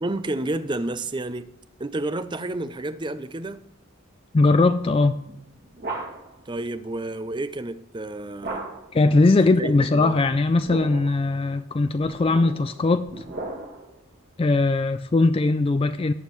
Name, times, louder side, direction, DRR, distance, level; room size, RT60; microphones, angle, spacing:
voice 1, 0.0-1.5 1.8-3.6 6.5-8.7 9.6-10.1, right 2 dB, 20° right, 0.5 m, -30 dB
voice 2, 4.3-5.2 8.9-13.1 14.4-16.1, left 3 dB, 25° left, 0.3 m, -20 dB
sound 1, 5.2-6.4 8.4-9.0 10.4-11.2 12.0-14.0, right 2 dB, 45° right, 2.1 m, -36 dB
18.0 x 7.3 x 3.2 m
head